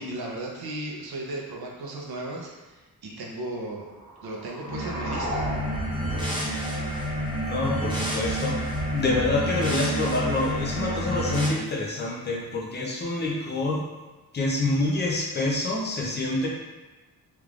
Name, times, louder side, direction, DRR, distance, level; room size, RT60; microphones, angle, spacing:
voice 1, 0.0-3.9 4.2-5.5, right 1 dB, 75° right, -1 dB, 0.7 m, -35 dB
sound 1, 3.6-7.5, equal, 40° right, 0.9 m, -38 dB
sound 2, 4.6-11.5, right 1 dB, 15° right, 0.7 m, -29 dB
sound 3, 5.4-6.4 8.2-9.4, right 2 dB, 60° left, 1.3 m, -36 dB
voice 2, 7.5-8.6 8.9-13.9 14.3-16.5, left 2 dB, 25° left, -3 dB, 0.6 m, -26 dB
3.5 x 3.1 x 2.4 m, 1.2 s
wide cardioid pair, 175°, 38 cm